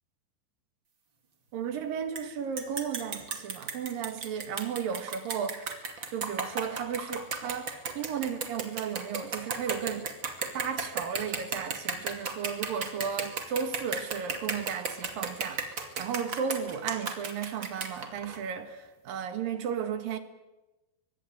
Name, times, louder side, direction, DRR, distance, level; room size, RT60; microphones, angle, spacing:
voice 1, 1.5-5.7 6.1-10.2 10.5-20.2, right 7 dB, 65° right, 2.9 m, -34 dB
sound 1, 2.2-2.3 2.6-18.4, right 5 dB, 35° right, 2.4 m, -34 dB
24.0 x 21.0 x 9.4 m
omnidirectional pair, 5.1 m